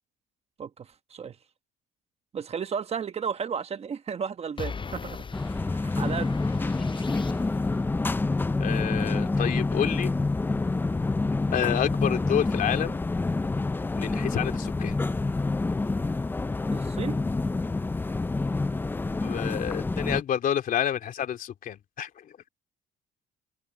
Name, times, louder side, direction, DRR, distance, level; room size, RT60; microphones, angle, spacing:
voice 1, 0.6-1.4 2.3-5.2 5.7-6.3 14.1-14.3 16.7-17.2, right 7 dB, 35° right, 1.3 m, -33 dB
sound 1, 4.6-7.8, left 5 dB, 30° left, 7.2 m, -40 dB
sound 2, 5.3-20.2, left 3 dB, 10° left, 0.5 m, -27 dB
voice 2, 8.6-10.1 11.5-13.0 13.9-15.0 19.1-22.1, left 9 dB, 55° left, 2.9 m, -29 dB
cardioid pair, 110°, 17 cm